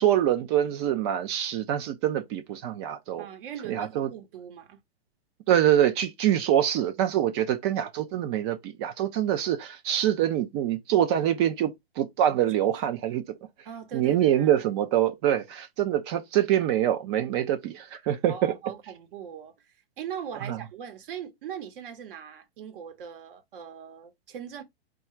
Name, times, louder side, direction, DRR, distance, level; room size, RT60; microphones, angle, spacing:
voice 1, 0.0-3.3 3.7-4.1 5.5-13.2 13.9-18.5 20.5-20.6, right 11 dB, 25° right, 0.4 m, -25 dB
voice 2, 3.2-4.8 12.2-12.7 13.6-14.6 18.3-19.5 20.0-24.6, right 8 dB, 55° right, 0.9 m, -40 dB
3.7 x 2.3 x 4.3 m
hypercardioid pair, 130°, 32 cm